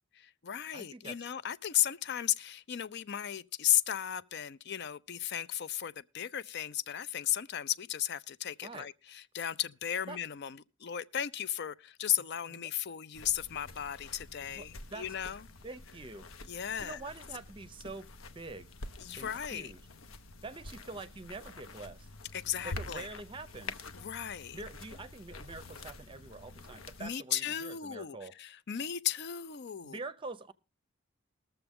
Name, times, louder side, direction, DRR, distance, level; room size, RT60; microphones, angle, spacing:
voice 1, 0.2-15.4 16.5-17.0 19.0-19.7 22.3-23.1 23.9-24.6 27.0-30.0, left 10 dB, 55° left, 0.5 m, -35 dB
voice 2, 0.7-1.2 8.6-8.9 10.1-10.2 12.5-12.7 14.4-15.1 15.6-16.3 16.8-18.7 19.2-19.8 20.4-22.1 22.6-23.8 24.5-28.4 29.8-30.5, right 3 dB, 25° right, 0.6 m, -45 dB
sound 1, 13.1-27.1, left 3 dB, 85° left, 0.9 m, -47 dB
20.5 x 6.9 x 3.6 m
head